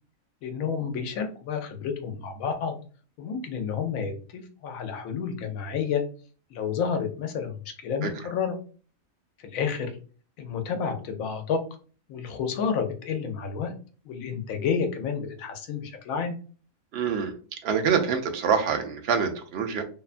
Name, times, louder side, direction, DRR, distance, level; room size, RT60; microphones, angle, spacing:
voice 1, 0.4-2.8 3.2-6.0 6.5-8.6 9.4-10.0 10.4-11.6 12.1-13.7 14.0-16.4, left 6 dB, 75° left, 6 dB, 1.0 m, -30 dB
voice 2, 16.9-17.3 17.6-19.8, right 6 dB, 65° right, 5 dB, 0.6 m, -25 dB
2.7 x 2.2 x 2.4 m, 0.39 s
omnidirectional pair, 1.4 m